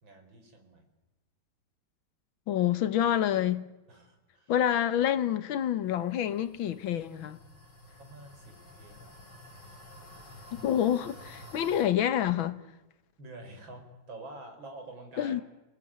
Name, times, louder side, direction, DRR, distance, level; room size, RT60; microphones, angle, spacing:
voice 1, 0.0-0.8 3.9-4.5 8.0-9.3 11.6-11.7 13.2-15.4, right 2 dB, 80° right, 5.1 m, -48 dB
voice 2, 2.5-3.6 4.5-7.4 10.5-12.6 15.2-15.4, left 10 dB, 85° left, 1.9 m, -27 dB
sound 1, 5.9-11.8, left 1 dB, 60° left, 5.2 m, -51 dB
29.0 x 19.5 x 8.8 m
omnidirectional pair, 2.1 m